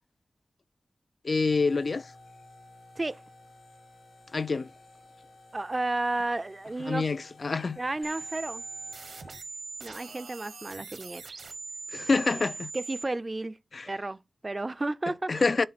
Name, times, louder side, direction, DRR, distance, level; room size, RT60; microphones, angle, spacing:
voice 1, 1.2-2.1 4.3-4.7 6.8-7.8 11.9-12.7 13.7-13.9 15.3-15.7, left 4 dB, 55° left, 0.3 m, -27 dB
sound 1, 1.5-9.4, left 2 dB, 80° left, 2.0 m, -54 dB
voice 2, 5.5-7.1 7.8-8.6 9.8-11.2 12.7-13.6 13.9-15.5, right 2 dB, 30° right, 0.4 m, -32 dB
sound 2, 8.0-13.0, right 4 dB, 80° right, 1.3 m, -41 dB
8.6 x 3.7 x 4.2 m
wide cardioid pair, 85°, 0 cm